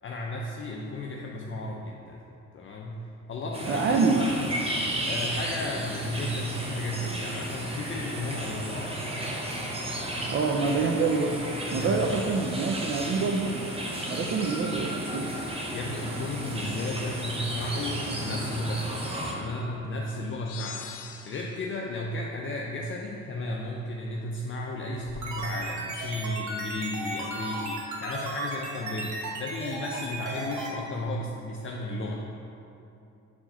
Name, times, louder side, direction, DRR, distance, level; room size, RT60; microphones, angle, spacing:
voice 1, 0.0-2.2 2.5-3.0 3.3-4.5 5.1-9.1 11.7-12.2 15.7-20.9 21.3-32.2, left 1 dB, 40° left, -1 dB, 0.5 m, -34 dB
sound 1, 3.5-19.3, right 1 dB, 20° right, 0.9 m, -33 dB
voice 2, 3.7-4.3 10.3-11.4 11.7-13.7 14.1-15.3, right 4 dB, 45° right, 1 dB, 0.5 m, -26 dB
sound 2, 20.5-21.8, left 9 dB, 90° left, 0.6 m, -42 dB
sound 3, 25.0-30.7, right 2 dB, 75° right, 1.2 m, -35 dB
4.5 x 4.4 x 5.7 m, 2.7 s
cardioid pair, 90°, 30 cm